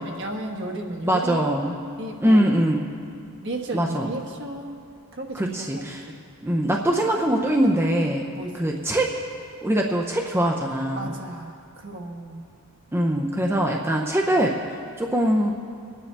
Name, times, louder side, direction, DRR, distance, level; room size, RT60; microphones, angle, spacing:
voice 1, 0.0-1.6 2.0-2.6 3.4-4.8 5.1-5.8 6.1-6.2 7.9-8.1 8.3-8.6 10.9-12.4, right 2 dB, 55° right, 1 dB, 1.4 m, -34 dB
voice 2, 1.0-1.8 2.2-2.9 3.7-4.1 5.3-6.1 6.4-8.2 8.5-9.1 9.6-11.1 12.9-14.5 15.0-15.5, right 1 dB, 10° right, 0 dB, 0.6 m, -22 dB
24.0 x 9.8 x 3.4 m, 2.4 s
head